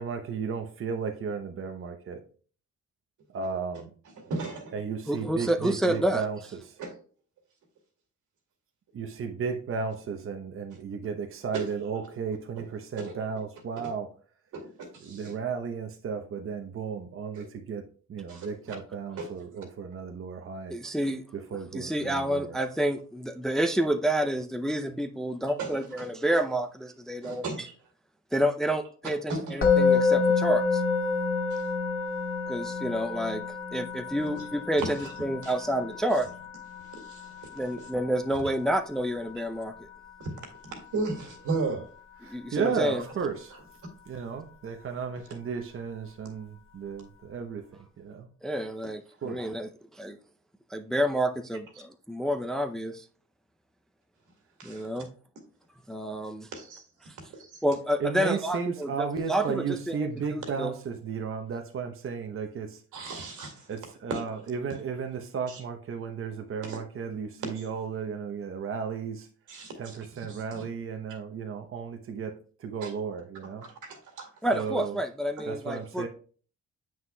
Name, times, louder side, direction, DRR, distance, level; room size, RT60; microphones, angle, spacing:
voice 1, 0.0-2.2 3.3-3.9 4.7-6.6 8.9-14.1 15.0-17.8 18.1-20.7 21.5-22.6 42.2-43.5 44.1-47.6 48.0-48.3 49.2-49.5 58.0-62.8 63.7-69.3 69.8-73.7 74.5-75.0 75.5-76.1, right 6 dB, 45° right, 4 dB, 0.8 m, -34 dB
voice 2, 4.2-4.8 6.8-6.9 11.5-11.7 12.6-12.7 13.0-13.1 13.8-13.9 14.5-15.3 17.3-17.5 18.3-18.5 19.2-19.3 25.6-26.1 27.2-27.7 29.3-29.5 31.5-31.6 34.8-35.1 35.4-35.5 36.9-37.6 40.2-40.3 40.6-41.9 42.9-43.0 54.6-54.9 56.5-56.8 57.3-57.6 62.9-63.7 64.1-64.2 65.5-65.6 66.7-66.8 67.4-67.6 69.5-70.6 72.8-72.9 73.6-74.3 75.4-75.5, right 3 dB, 80° right, 3 dB, 2.1 m, -36 dB
voice 3, 5.1-6.2 18.3-18.4 20.7-21.2 21.7-27.7 28.3-30.8 32.5-36.3 37.5-39.7 42.3-43.0 48.4-50.2 50.7-53.0 54.6-55.1 55.9-56.5 57.6-60.7 74.4-76.1, right 1 dB, ahead, 6 dB, 0.5 m, -29 dB
Musical instrument, 29.6-40.7, left 4 dB, 45° left, 1.8 m, -29 dB
7.4 x 6.0 x 2.2 m, 0.41 s
cardioid pair, 90°, 30 cm